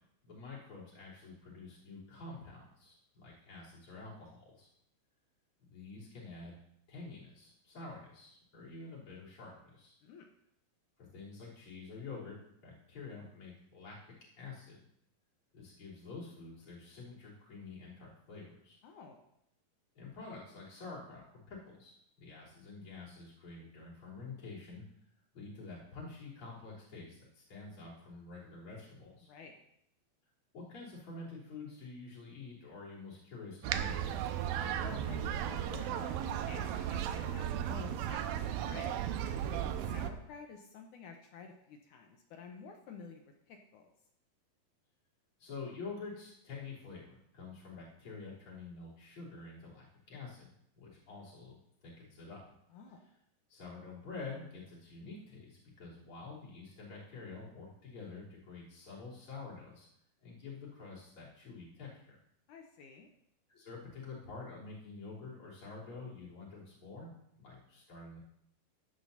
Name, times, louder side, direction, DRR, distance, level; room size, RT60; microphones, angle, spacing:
voice 1, 0.2-4.7 5.7-6.6 6.9-9.9 11.0-14.0 14.4-14.8 15.5-18.8 20.0-24.8 25.3-29.3 30.5-34.2 39.6-40.0 45.4-50.5 50.8-52.4 53.5-59.9 60.2-62.1 63.5-67.1 67.4-68.2, left 4 dB, 35° left, -6 dB, 4.2 m, -48 dB
voice 2, 18.8-19.2 29.2-29.6 34.8-39.1 39.5-43.2 43.5-43.9 52.7-53.0 62.5-63.1, left 5 dB, 70° left, 3 dB, 2.1 m, -51 dB
sound 1, 33.6-40.1, right 10 dB, 90° right, 2.5 m, -35 dB
14.0 x 11.5 x 2.8 m, 0.75 s
omnidirectional pair, 4.2 m